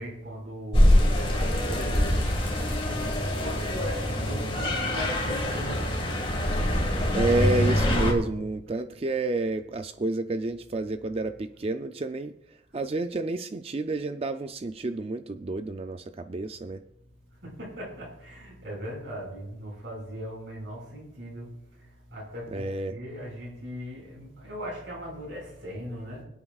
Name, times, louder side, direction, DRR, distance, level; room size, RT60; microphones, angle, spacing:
voice 1, 0.0-5.9 17.4-21.5 22.1-26.2, equal, 60° right, -3 dB, 5.2 m, -39 dB
sound 1, 0.7-8.1, left 1 dB, 25° left, 1.8 m, -24 dB
voice 2, 7.1-12.3 12.7-16.8 22.5-22.9, right 2 dB, 30° right, 9 dB, 0.4 m, -29 dB
25.5 x 8.6 x 2.4 m, 0.81 s
head